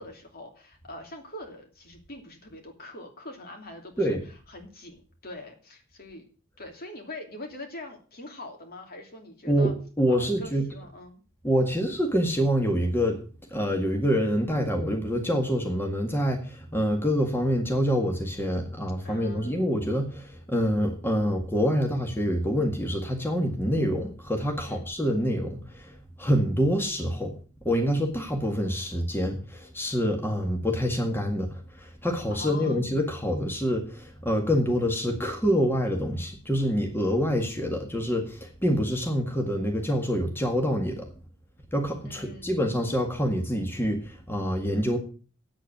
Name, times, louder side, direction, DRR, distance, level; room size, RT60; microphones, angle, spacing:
voice 1, 0.0-4.2 4.5-6.2 6.6-9.7 10.1-11.2 19.0-19.7 24.7-24.8 32.3-32.8 42.0-42.5, left 2 dB, 50° left, 3 dB, 2.9 m, -43 dB
voice 2, 9.5-10.7 11.4-13.2 13.5-25.9 26.2-27.4 27.7-41.1 41.7-45.0, equal, 10° left, 2 dB, 1.8 m, -26 dB
8.9 x 8.2 x 8.0 m, 0.39 s
head